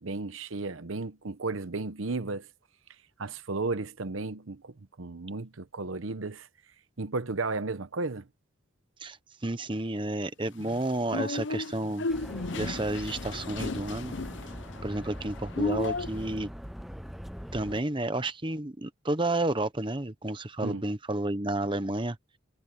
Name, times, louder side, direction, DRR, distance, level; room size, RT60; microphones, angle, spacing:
voice 1, 0.0-2.5 3.2-6.5 7.0-8.3 20.6-20.8, right 3 dB, 80° right, 1.0 m, -34 dB
voice 2, 9.4-12.1 12.5-14.2 14.8-16.5 17.5-22.2, right 2 dB, 25° right, 1.0 m, -31 dB
sound 1, 10.6-16.3, left 3 dB, 65° left, 0.7 m, -35 dB
sound 2, 12.1-17.8, equal, ahead, 0.7 m, -41 dB
head